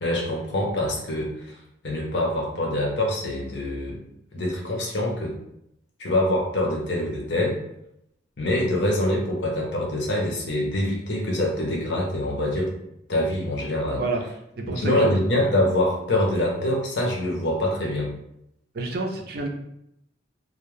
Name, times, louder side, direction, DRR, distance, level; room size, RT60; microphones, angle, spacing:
voice 1, 0.0-1.6 1.8-4.0 4.3-5.4 6.0-7.6 8.4-12.7 13.1-14.0 14.7-18.1, left 1 dB, 65° left, -2 dB, 0.7 m, -25 dB
voice 2, 14.6-15.1 18.7-19.5, right 3 dB, 50° right, 2 dB, 0.4 m, -28 dB
2.2 x 2.1 x 3.1 m, 0.79 s
head